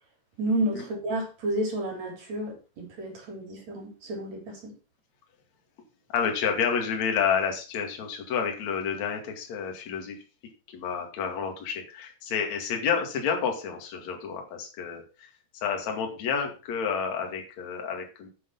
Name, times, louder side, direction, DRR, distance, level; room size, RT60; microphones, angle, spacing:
voice 1, 0.4-4.7, right 1 dB, 45° right, 4.1 m, -31 dB
voice 2, 6.1-10.2 10.7-15.3 15.5-18.3, left 6 dB, 50° left, 3.2 m, -29 dB
9.4 x 8.0 x 5.5 m
omnidirectional pair, 4.7 m